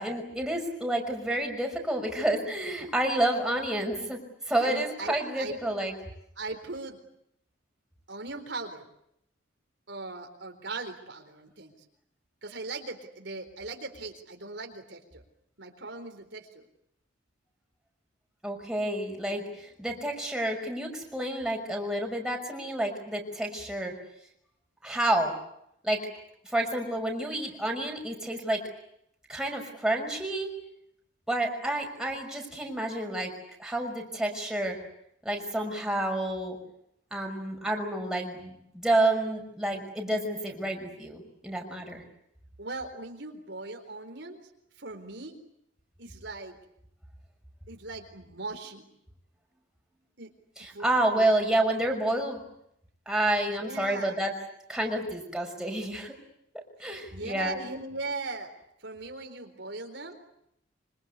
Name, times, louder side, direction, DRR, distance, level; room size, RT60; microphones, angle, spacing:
voice 1, 0.0-4.2 4.5-5.9 18.4-23.9 24.8-25.3 25.8-26.0 26.5-28.6 29.3-30.5 31.3-33.3 33.6-34.8 35.2-36.6 37.1-42.0 50.6-52.4 53.1-54.3 54.7-56.1 56.8-57.6, right 1 dB, 5° right, 1 dB, 5.7 m, -29 dB
voice 2, 4.5-5.8 6.4-7.0 8.1-8.9 9.9-11.7 12.4-15.2 15.6-16.7 42.6-44.4 44.8-45.4 46.0-46.6 47.7-48.8 50.2-50.3 50.7-51.3 53.6-54.1 56.8-58.5 58.8-60.2, right 3 dB, 65° right, 4 dB, 4.1 m, -39 dB
26.0 x 25.5 x 8.3 m, 0.75 s
head